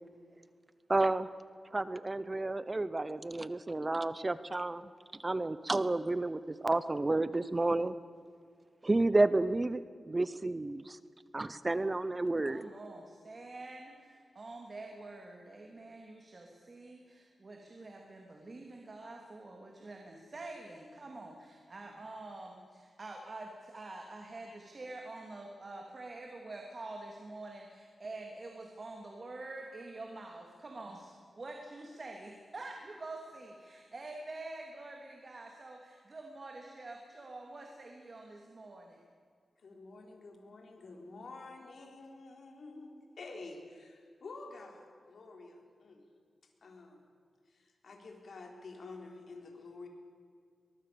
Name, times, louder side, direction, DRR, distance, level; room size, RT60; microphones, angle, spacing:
voice 1, 0.9-1.3 1.7-7.9 8.8-11.0 11.3-12.6, right 2 dB, 25° right, 15 dB, 0.8 m, -31 dB
voice 2, 12.4-39.0, right 2 dB, 45° right, 1 dB, 2.9 m, -47 dB
voice 3, 39.6-46.0 46.6-47.0 47.5-49.9, left 3 dB, 70° left, 3 dB, 4.0 m, -49 dB
23.0 x 22.0 x 7.0 m, 2.2 s
wide cardioid pair, 95°, 0 cm